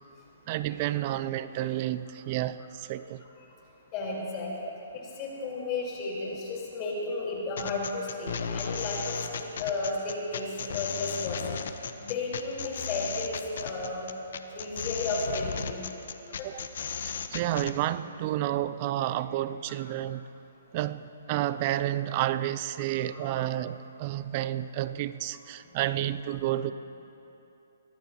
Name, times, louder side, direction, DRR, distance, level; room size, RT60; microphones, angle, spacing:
voice 1, 0.5-3.2 16.4-16.6 17.0-20.3 20.7-26.7, right 13 dB, 35° right, 14 dB, 0.5 m, -30 dB
voice 2, 3.9-4.5 4.9-11.4 12.0-14.1 14.5-15.8 23.1-23.3, left 3 dB, 30° left, -3 dB, 4.1 m, -33 dB
sound 1, 7.6-17.7, left 6 dB, 65° left, 0.9 m, -35 dB
23.0 x 16.0 x 3.0 m, 2.9 s
hypercardioid pair, 145°, 0 cm